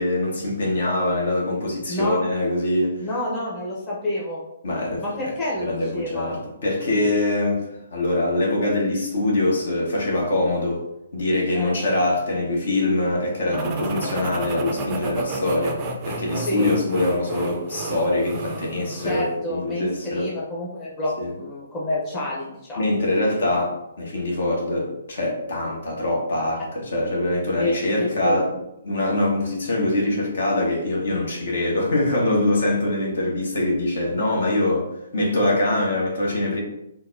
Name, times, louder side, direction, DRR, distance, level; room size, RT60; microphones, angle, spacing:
voice 1, 0.0-3.1 4.6-5.3 5.6-7.6 7.9-10.8 11.1-20.3 21.2-21.3 22.8-28.5 28.8-36.6, left 1 dB, 60° left, -1 dB, 1.0 m, -23 dB
voice 2, 1.9-2.2 3.0-4.4 5.0-6.4 11.5-11.7 16.4-16.7 19.0-22.8 27.6-28.4, left 1 dB, 20° left, -6 dB, 0.9 m, -29 dB
sound 1, 13.5-19.3, right 3 dB, 30° right, 0.5 m, -32 dB
3.9 x 2.2 x 2.6 m, 0.83 s
figure-of-eight pair, 125°, 0 cm